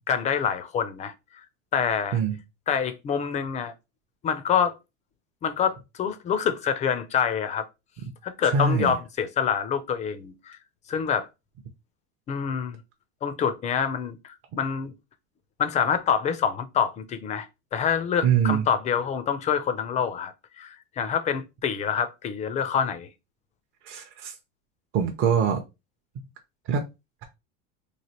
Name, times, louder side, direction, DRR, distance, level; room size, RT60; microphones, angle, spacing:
voice 1, 0.1-1.1 1.7-2.2 2.7-3.7 4.2-4.8 5.4-7.7 8.2-10.6 10.9-11.3 12.3-12.8 13.2-14.9 15.6-17.5 17.7-23.1, left 7 dB, 20° left, 0.3 m, -26 dB
voice 2, 8.4-8.9 18.2-18.6 23.8-24.3 24.9-25.6 26.7-26.8, right 6 dB, 40° right, 0.5 m, -23 dB
3.1 x 2.4 x 2.8 m
supercardioid pair, 130°, 34 cm